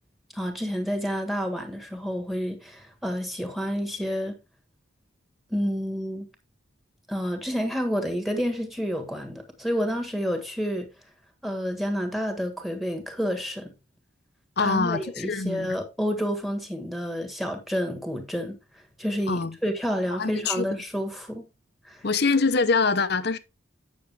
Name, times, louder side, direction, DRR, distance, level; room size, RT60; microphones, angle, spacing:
voice 1, 0.3-4.3 5.5-6.3 7.1-10.9 11.4-13.7 14.6-18.5 19.0-21.5 21.9-22.0, equal, ahead, 1.5 m, -29 dB
voice 2, 14.6-15.8 19.3-19.6 20.2-20.8 22.0-23.4, left 4 dB, 55° left, 0.8 m, -24 dB
9.0 x 6.4 x 3.4 m
head